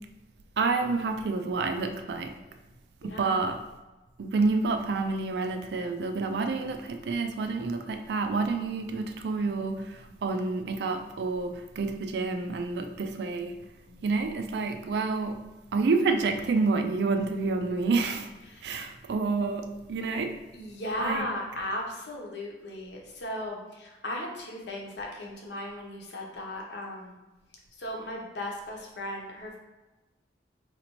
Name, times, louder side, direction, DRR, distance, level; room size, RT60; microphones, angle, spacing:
voice 1, 0.6-2.3 3.0-3.6 4.2-13.5 14.0-15.4 15.7-18.3 18.6-20.3 21.0-21.3, right 3 dB, 70° right, 6 dB, 0.4 m, -28 dB
voice 2, 3.0-3.4 10.1-10.2 13.8-14.0 18.4-18.6 20.5-27.2 27.8-29.6, left 1 dB, 80° left, -1 dB, 0.8 m, -36 dB
4.0 x 2.9 x 3.0 m, 1.1 s
head